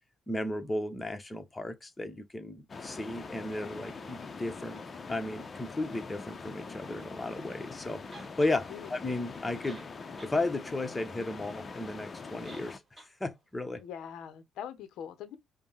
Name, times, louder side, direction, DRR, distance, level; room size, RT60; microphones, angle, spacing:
voice 1, 0.3-4.8 5.1-9.8 10.2-13.8, left 2 dB, 20° left, 1.0 m, -34 dB
sound 1, 2.7-12.8, left 4 dB, 35° left, 0.7 m, -43 dB
sound 2, 8.1-8.6 9.4-9.5 9.6-10.4 10.7-10.8 12.4-12.7 13.0-13.1, right 2 dB, 25° right, 1.7 m, -50 dB
voice 2, 13.8-15.4, left 9 dB, 70° left, 0.7 m, -42 dB
5.2 x 2.2 x 3.1 m
hypercardioid pair, 60°, 0 cm